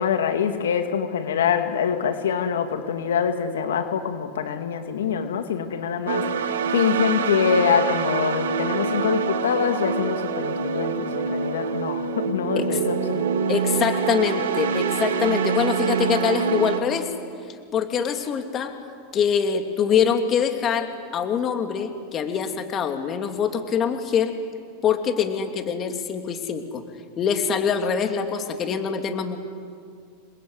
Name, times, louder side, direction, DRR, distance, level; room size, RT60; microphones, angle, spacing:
voice 1, 0.0-13.4, left 7 dB, 90° left, 7 dB, 2.4 m, -25 dB
sound 1, 6.1-16.8, right 6 dB, 85° right, 2.5 m, -25 dB
voice 2, 13.5-17.1 17.7-18.7 19.1-24.3 24.8-26.8 27.2-29.4, left 7 dB, 35° left, 6 dB, 2.9 m, -24 dB
28.0 x 21.5 x 9.8 m, 2.3 s
hypercardioid pair, 120°, 0 cm